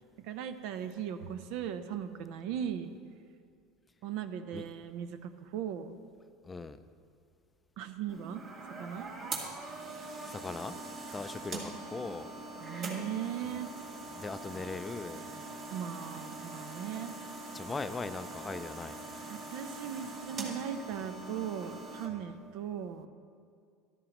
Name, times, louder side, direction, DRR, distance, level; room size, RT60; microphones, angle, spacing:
voice 1, 0.2-2.9 4.0-6.0 7.8-8.4 8.8-9.1 12.6-13.7 15.7-17.1 19.3-23.1, right 9 dB, 65° right, 10 dB, 0.7 m, -38 dB
voice 2, 6.4-6.8 10.3-10.8 11.1-12.3 14.1-15.2 17.5-19.0, left 3 dB, 20° left, 11 dB, 0.4 m, -39 dB
sound 1, 8.1-22.1, right 2 dB, 45° right, 2.3 m, -43 dB
13.0 x 12.5 x 3.0 m, 2.2 s
supercardioid pair, 110°, 0 cm